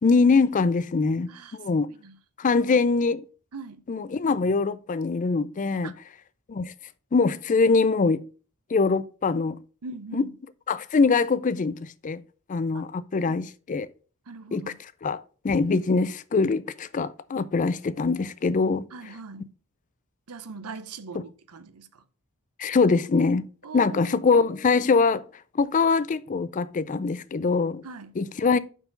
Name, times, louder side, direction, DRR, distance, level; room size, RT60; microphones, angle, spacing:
voice 1, 0.0-1.9 2.4-3.2 3.9-5.9 6.5-6.7 7.1-8.2 8.7-9.6 10.1-10.2 10.7-12.2 12.5-13.9 14.5-18.9 21.1-21.2 22.6-23.4 23.7-25.2 25.5-27.8 28.2-28.6, left 4 dB, 35° left, 0.4 m, -23 dB
voice 2, 1.3-2.2 3.5-3.8 5.8-5.9 9.8-10.3 13.3-13.4 14.3-14.8 18.9-19.5 20.3-22.0 23.6-24.2 27.8-28.1, right 4 dB, 85° right, 0.7 m, -41 dB
5.7 x 4.7 x 5.2 m
head